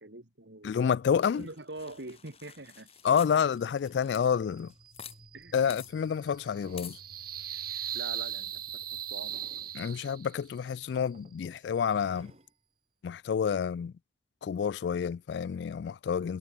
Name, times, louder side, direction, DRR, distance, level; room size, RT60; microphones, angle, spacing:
voice 1, 0.0-0.8 1.3-2.9 5.3-5.7 7.9-9.4, right 2 dB, 70° right, 2.8 m, -44 dB
voice 2, 0.6-1.5 3.0-4.7 5.5-7.0 9.7-12.3 13.0-13.9 14.4-16.4, left 7 dB, 65° left, 0.3 m, -29 dB
sound 1, 1.2-5.2 5.4-5.5 5.7-5.9 6.8-7.0, left 9 dB, 35° left, 5.9 m, -48 dB
sound 2, 2.5-2.7 3.8-4.4 5.0-5.3 5.8-7.0 8.3-8.5 9.2-9.8 10.6-10.7 11.1-11.6 12.0-12.6 13.3-13.4, right 1 dB, 35° right, 5.9 m, -59 dB
sound 3, 4.5-10.5, right 11 dB, 50° right, 5.2 m, -39 dB
head